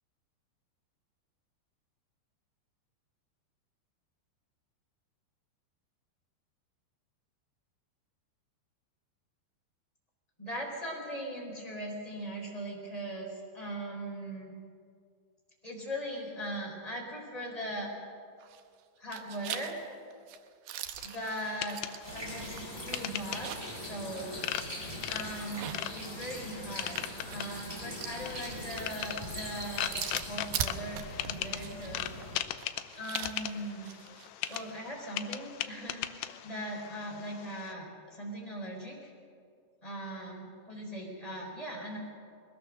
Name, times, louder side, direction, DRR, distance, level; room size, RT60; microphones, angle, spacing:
voice 1, 10.4-14.5 15.6-17.9 19.0-19.7 21.0-21.8 22.0-24.4 25.1-27.0 27.3-32.1 32.9-33.9 34.5-39.1 39.8-42.0, right 1 dB, 10° left, -2 dB, 4.0 m, -40 dB
sound 1, 18.4-18.8 19.1-23.8 24.2-24.3 25.4-34.6, right 10 dB, 85° right, 2.1 m, -42 dB
sound 2, 21.0-37.7, left 13 dB, 80° left, 2.5 m, -40 dB
sound 3, 22.0-32.4, equal, 10° right, 5.0 m, -42 dB
21.5 x 20.0 x 6.6 m, 2.3 s
omnidirectional pair, 5.4 m